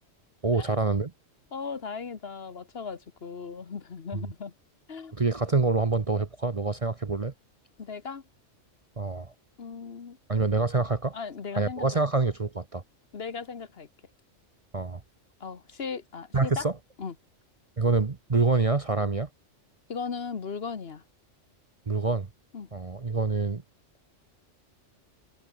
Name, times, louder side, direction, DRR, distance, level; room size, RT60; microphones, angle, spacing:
voice 1, 0.4-1.1 4.1-4.2 5.1-7.3 9.0-9.3 10.3-11.2 11.6-12.8 14.7-15.0 16.3-16.7 17.8-19.3 21.9-22.3 22.7-23.6, right 3 dB, 30° right, 0.9 m, -26 dB
voice 2, 1.5-4.5 4.9-5.1 7.8-8.2 9.6-10.2 11.1-12.0 13.1-13.9 15.4-16.7 17.0-17.1 19.9-21.0 22.5-22.7, left 5 dB, 55° left, 1.4 m, -37 dB
omnidirectional pair, 1.3 m